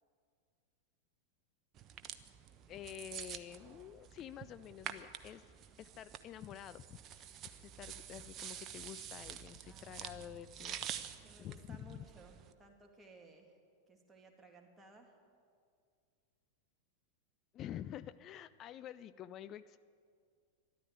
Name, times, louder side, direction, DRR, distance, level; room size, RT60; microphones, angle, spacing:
sound 1, 1.8-12.5, right 9 dB, 30° right, 0.8 m, -48 dB
voice 1, 2.7-5.4 5.8-10.9 11.4-12.0 17.5-19.8, left 11 dB, 30° left, 14 dB, 0.4 m, -49 dB
voice 2, 9.7-10.4 11.2-13.6 13.9-15.1, right 3 dB, 10° right, 1 dB, 2.3 m, -60 dB
13.5 x 11.5 x 9.1 m, 2.2 s
figure-of-eight pair, 90°, 0 cm